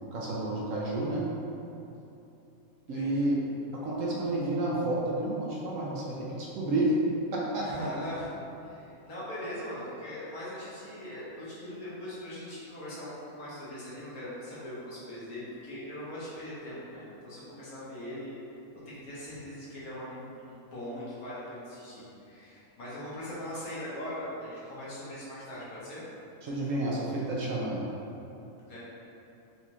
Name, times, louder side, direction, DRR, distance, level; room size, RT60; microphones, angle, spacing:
voice 1, 0.0-1.3 2.9-3.4 3.8-6.9 7.3-7.9 26.4-27.9, right 2 dB, 70° right, -5 dB, 0.9 m, -30 dB
voice 2, 2.9-3.3 7.6-8.3 8.6-18.3 18.8-26.0 28.7-28.8, left 1 dB, 70° left, -9 dB, 1.4 m, -40 dB
4.1 x 2.4 x 2.8 m, 2.9 s
omnidirectional pair, 1.6 m